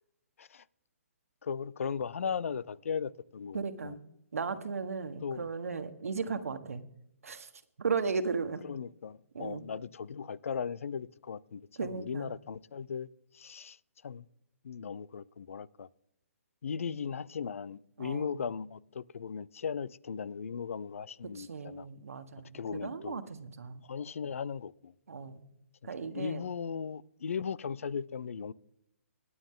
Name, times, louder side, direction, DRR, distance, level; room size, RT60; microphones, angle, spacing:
voice 1, 1.4-4.0 5.2-5.5 6.3-6.4 8.6-13.1 13.3-13.8 14.0-14.3 14.6-15.9 16.6-21.9 22.5-23.2 23.8-24.9 26.0-28.5, left 6 dB, 70° left, 0.6 m, -37 dB
voice 2, 3.5-4.0 4.3-6.8 7.2-7.5 7.8-8.6 9.3-9.6 11.8-12.3 18.0-18.4 21.3-23.8 25.1-25.4 25.8-26.4, right 5 dB, 80° right, 1.5 m, -36 dB
26.5 x 9.6 x 3.8 m
hypercardioid pair, 160°, 8 cm